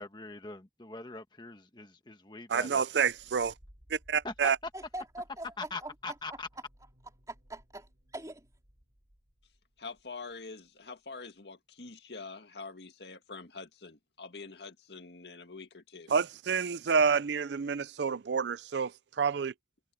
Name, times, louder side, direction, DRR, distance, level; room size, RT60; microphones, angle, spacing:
voice 1, 0.0-2.8 4.2-4.3 5.6-6.5, left 3 dB, 25° left, 1.3 m, -42 dB
voice 2, 2.5-3.5 3.9-4.6 16.1-18.9 19.2-19.5, right 6 dB, 75° right, 0.5 m, -28 dB
sound 1, 3.0-10.4 10.7-10.8 11.4-11.5, equal, 50° right, 4.9 m, -62 dB
voice 3, 4.7-6.4 7.3-8.5, right 1 dB, 20° right, 3.6 m, -43 dB
voice 4, 9.8-16.1, left 4 dB, 70° left, 1.9 m, -45 dB
head